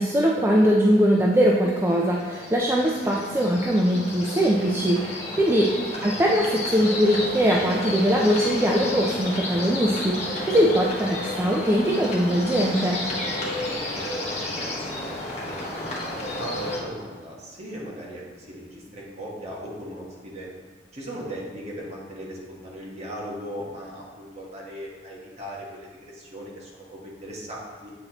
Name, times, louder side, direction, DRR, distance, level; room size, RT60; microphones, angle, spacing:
voice 1, 0.0-5.0 5.4-5.7 6.0-13.0, equal, 15° right, -2 dB, 0.4 m, -21 dB
sound 1, 1.4-16.8, left 1 dB, 40° left, 1.1 m, -32 dB
voice 2, 4.9-5.6 13.3-15.7 16.4-20.5 20.9-27.9, equal, 40° right, -4 dB, 1.3 m, -38 dB
8.1 x 4.1 x 2.9 m, 1.5 s
head